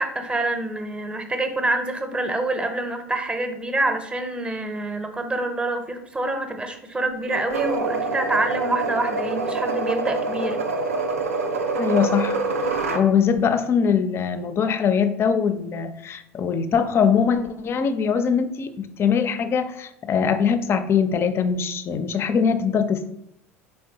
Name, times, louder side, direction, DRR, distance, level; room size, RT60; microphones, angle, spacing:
voice 1, 0.0-10.6, right 2 dB, 15° right, 6 dB, 0.6 m, -26 dB
sound 1, 7.3-13.1, right 3 dB, 90° right, 0.4 m, -26 dB
voice 2, 11.8-12.4 12.9-23.1, left 6 dB, 35° left, 11 dB, 0.4 m, -22 dB
4.4 x 3.3 x 2.7 m, 0.79 s
hypercardioid pair, 75°, 7 cm